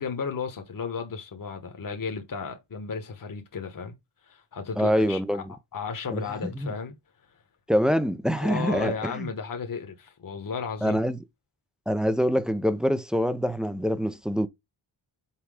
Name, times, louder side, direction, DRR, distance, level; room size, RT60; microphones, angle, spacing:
voice 1, 0.0-4.0 4.2-5.4 5.7-7.0 8.4-11.0, left 5 dB, 40° left, 1.3 m, -34 dB
voice 2, 4.8-5.5 6.1-6.2 6.5-6.7 7.7-9.3 10.8-11.2 11.9-14.5, equal, ahead, 0.6 m, -25 dB
5.8 x 4.8 x 4.9 m
wide cardioid pair, 130°, 49 cm